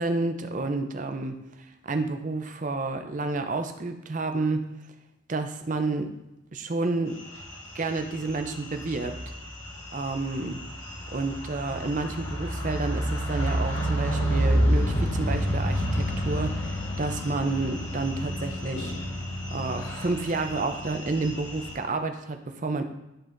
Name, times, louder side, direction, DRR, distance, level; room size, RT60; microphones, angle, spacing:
voice 1, 0.0-1.4 1.8-4.7 5.3-6.1 6.5-7.2 7.7-9.2 9.9-10.6 11.1-16.7 17.0-18.9 19.5-22.8, right 3 dB, 40° right, 7 dB, 0.5 m, -30 dB
sound 1, 7.2-21.7, equal, 70° left, 1.4 m, -30 dB
11.5 x 4.1 x 2.5 m, 0.94 s
head